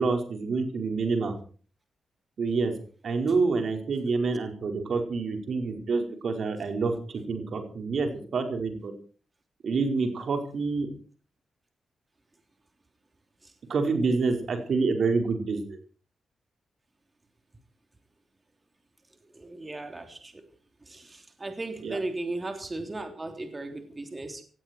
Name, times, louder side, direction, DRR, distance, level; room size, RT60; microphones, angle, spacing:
voice 1, 0.0-1.3 2.4-2.7 3.0-8.9 9.6-10.9 13.7-15.8 21.8-22.0, right 4 dB, 65° right, 5.0 m, -27 dB
voice 2, 19.2-20.4 20.8-24.4, right 2 dB, 30° right, 3.3 m, -36 dB
17.5 x 16.0 x 4.6 m
supercardioid pair, 55°, 0 cm